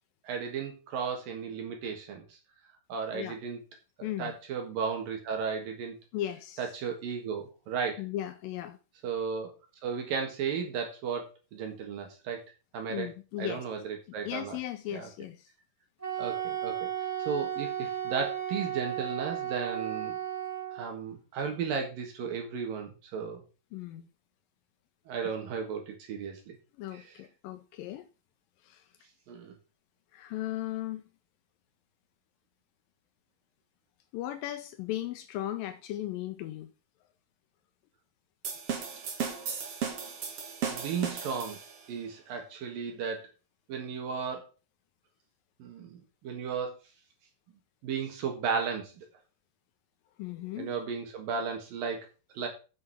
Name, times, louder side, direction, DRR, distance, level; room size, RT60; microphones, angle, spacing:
voice 1, 0.2-2.2 2.9-3.6 4.0-5.9 6.6-8.0 9.0-9.5 9.8-11.3 11.5-12.4 12.7-13.1 13.4-14.6 14.9-15.1 16.2-16.8 17.3-20.2 20.7-23.4 25.1-26.6 26.9-27.2 29.3-29.6 40.7-41.6 41.9-43.2 43.7-44.4 45.6-46.8 47.8-49.1 50.6-52.1 52.4-52.5, right 6 dB, 70° right, 3.3 m, -34 dB
voice 2, 4.0-4.3 6.1-6.7 8.0-8.8 12.9-13.6 14.3-15.5 23.7-24.1 25.2-25.3 26.8-28.1 28.6-28.9 30.1-31.0 34.1-36.7 50.2-50.7, left 13 dB, 80° left, 2.3 m, -37 dB
Wind instrument woodwind instrument, 16.0-20.9, right 10 dB, 5° right, 2.5 m, -34 dB
sound 1, 38.4-41.9, right 6 dB, 45° right, 2.4 m, -35 dB
8.1 x 7.1 x 7.0 m
omnidirectional pair, 4.2 m